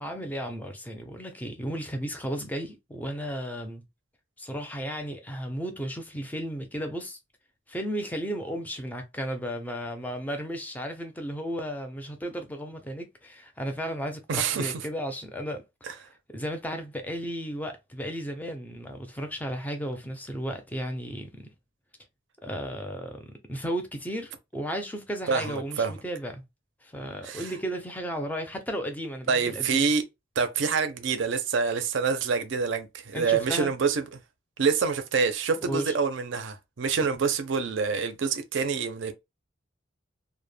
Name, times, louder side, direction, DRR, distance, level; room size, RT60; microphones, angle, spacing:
voice 1, 0.0-3.8 4.4-7.2 7.7-16.0 16.3-21.5 22.4-26.4 26.8-29.8 33.1-33.7 35.6-36.0, equal, 10° left, 0.4 m, -34 dB
voice 2, 14.3-14.7 15.9-16.0 25.3-25.9 27.2-27.5 29.3-30.0 30.4-34.0 34.6-39.1, right 5 dB, 65° right, 0.5 m, -26 dB
2.1 x 2.0 x 3.2 m
head